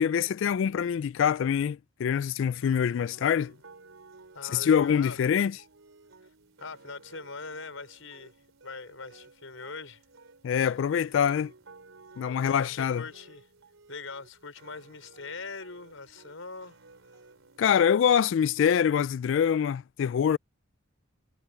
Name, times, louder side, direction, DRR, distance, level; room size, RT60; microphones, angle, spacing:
voice 1, 0.0-3.5 4.5-5.6 10.4-11.5 12.2-13.0 17.6-20.4, left 8 dB, 70° left, 0.3 m, -25 dB
sound 1, 2.6-18.6, right 3 dB, 90° right, 3.8 m, -55 dB
voice 2, 4.3-5.2 6.6-8.4 8.6-10.0 12.2-13.5 13.9-16.8, left 4 dB, 90° left, 5.2 m, -42 dB
head